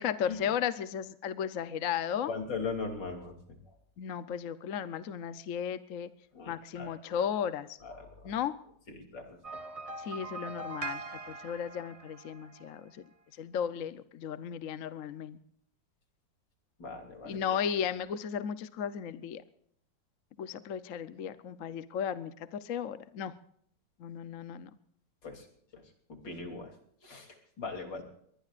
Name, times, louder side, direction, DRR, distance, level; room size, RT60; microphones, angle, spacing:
voice 1, 0.0-2.3 4.0-6.1 6.5-7.8 8.2-8.6 10.0-13.0 13.4-15.4 17.3-19.4 20.4-23.3 24.0-24.7, left 8 dB, 55° left, 13 dB, 1.0 m, -35 dB
voice 2, 2.3-3.3 6.3-7.0 7.8-8.3 8.9-9.4 16.8-17.6 25.2-25.5 25.7-25.8 26.1-26.7 27.0-28.0, left 4 dB, 75° left, 3 dB, 3.8 m, -39 dB
sound 1, 9.4-12.8, right 3 dB, 30° right, 0.7 m, -42 dB
22.5 x 20.5 x 2.5 m, 0.67 s
omnidirectional pair, 1.9 m